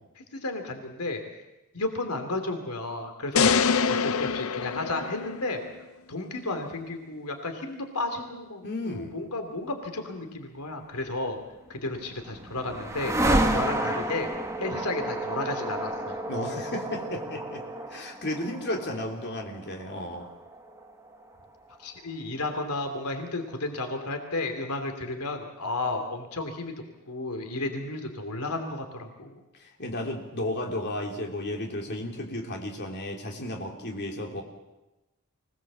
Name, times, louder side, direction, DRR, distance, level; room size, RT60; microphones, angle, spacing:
voice 1, 0.2-1.4 1.7-3.5 3.9-5.6 6.1-11.4 11.7-14.3 14.6-16.2 21.8-26.7 27.1-29.4, left 2 dB, 85° left, 6 dB, 2.8 m, -33 dB
sound 1, 3.4-5.7, left 6 dB, 65° left, 0.7 m, -25 dB
voice 2, 8.6-9.1 16.3-17.6 17.9-20.3 29.6-34.4, left 1 dB, 50° left, 1 dB, 3.1 m, -33 dB
sound 2, 11.7-21.8, right 1 dB, 15° right, 1.7 m, -31 dB
25.0 x 18.5 x 7.4 m, 1.0 s
head